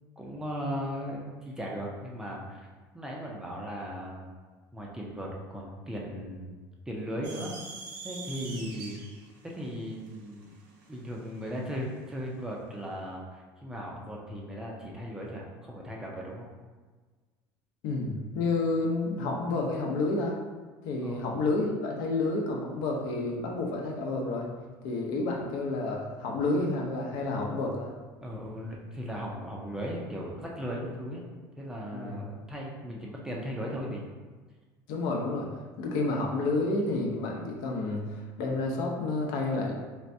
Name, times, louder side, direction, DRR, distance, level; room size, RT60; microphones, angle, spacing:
voice 1, 0.2-2.7 2.9-4.3 4.7-6.6 6.9-7.5 8.0-9.0 9.4-10.5 10.9-16.4 21.0-21.2 28.2-31.3 31.6-34.0, equal, 10° right, -3 dB, 0.4 m, -37 dB
sound 1, 7.2-11.8, right 4 dB, 75° right, 0.8 m, -44 dB
voice 2, 17.8-20.4 20.8-24.5 24.8-27.9 31.9-32.2 34.9-35.5 35.8-39.7, left 2 dB, 65° left, 0 dB, 0.7 m, -30 dB
4.5 x 3.3 x 2.6 m, 1.4 s
cardioid pair, 180°, 8 cm